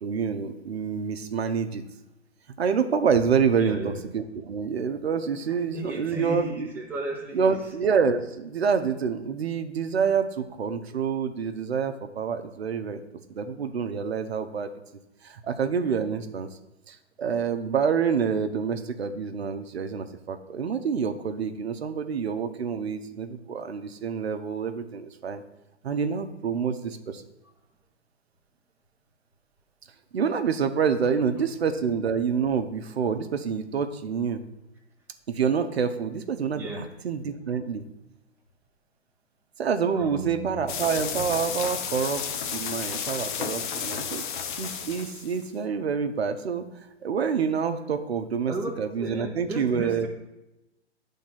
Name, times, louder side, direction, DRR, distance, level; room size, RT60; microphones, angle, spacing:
voice 1, 0.0-1.8 2.6-6.7 7.3-13.0 13.3-14.7 15.2-16.5 16.9-25.4 25.8-27.2 30.1-34.4 35.3-37.8 39.6-44.2 44.6-46.7 47.0-50.1, right 6 dB, 65° right, 8 dB, 0.8 m, -27 dB
voice 2, 3.6-3.9 5.7-7.5 36.5-36.9 39.9-40.6 48.5-50.1, right 2 dB, 5° right, -2 dB, 1.0 m, -34 dB
sound 1, 40.7-45.4, left 7 dB, 45° left, 0.8 m, -32 dB
8.6 x 3.6 x 5.7 m, 0.97 s
figure-of-eight pair, 120°, 34 cm